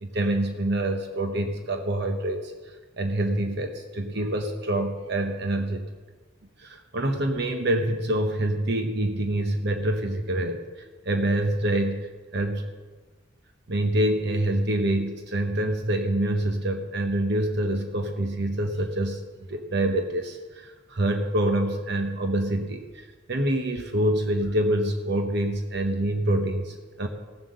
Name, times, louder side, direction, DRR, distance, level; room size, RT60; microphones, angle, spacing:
voice 1, 0.0-2.5 3.0-5.9 6.6-10.6 11.1-12.0 12.3-12.7 13.7-19.2 19.5-22.8 23.3-27.1, right 1 dB, 55° right, 5 dB, 1.0 m, -26 dB
16.5 x 7.7 x 6.6 m, 1.3 s
head